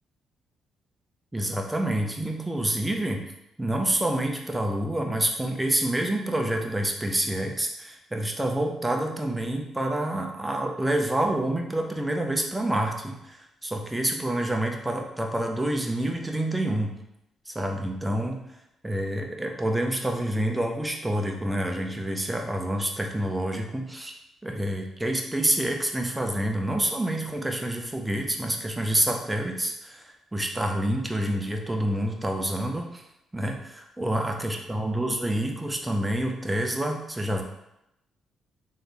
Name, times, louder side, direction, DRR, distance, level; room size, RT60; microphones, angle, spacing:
voice 1, 1.3-3.2 3.6-16.9 17.5-18.5 18.8-24.1 24.4-33.0 33.3-37.4, right 1 dB, 10° right, 3 dB, 0.6 m, -28 dB
3.3 x 3.2 x 4.1 m, 0.85 s
cardioid pair, 90°, 0 cm